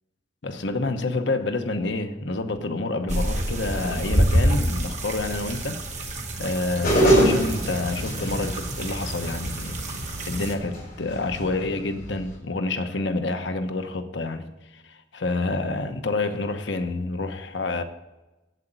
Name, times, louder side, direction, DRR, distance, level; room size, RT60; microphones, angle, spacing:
voice 1, 0.4-17.8, left 2 dB, 70° left, 1.0 m, -28 dB
sound 1, 3.1-10.5, right 1 dB, 40° right, 1.6 m, -27 dB
sound 2, 6.8-12.4, right 1 dB, 50° left, 4.7 m, -25 dB
8.0 x 8.0 x 8.8 m
head